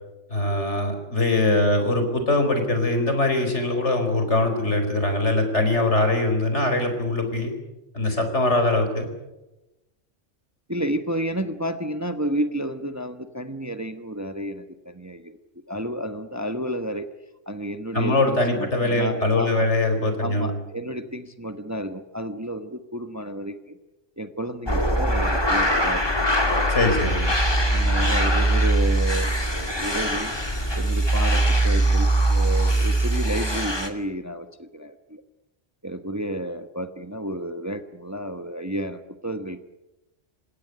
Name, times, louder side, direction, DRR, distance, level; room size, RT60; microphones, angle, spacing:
voice 1, 0.3-7.5 7.9-9.1 17.9-20.6 26.7-27.2, left 2 dB, 70° left, 7 dB, 4.8 m, -22 dB
voice 2, 10.7-15.4 15.7-17.1 17.5-19.7 20.2-23.8 24.2-26.2 27.0-27.3 27.7-30.3 30.8-35.2 35.8-39.6, right 1 dB, 15° right, 9 dB, 1.2 m, -31 dB
sound 1, 24.7-33.9, right 1 dB, 20° left, 2.3 m, -22 dB
28.0 x 17.0 x 10.0 m, 1.0 s
omnidirectional pair, 1.2 m